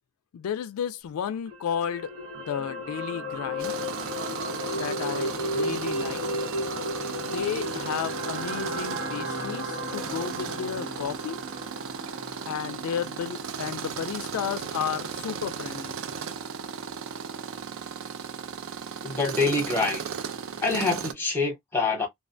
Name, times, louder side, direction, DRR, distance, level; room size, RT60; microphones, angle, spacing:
voice 1, 0.3-3.8 4.7-6.4 7.0-11.4 12.4-16.0, left 8 dB, 85° left, 0.3 m, -33 dB
sound 1, 1.5-13.8 14.1-14.3, equal, 85° right, 1.1 m, -34 dB
Tools, 3.6-21.1, right 6 dB, 65° right, 0.4 m, -36 dB
voice 2, 19.0-20.0 20.6-22.1, left 3 dB, 10° left, 0.8 m, -25 dB
2.3 x 2.1 x 2.5 m
head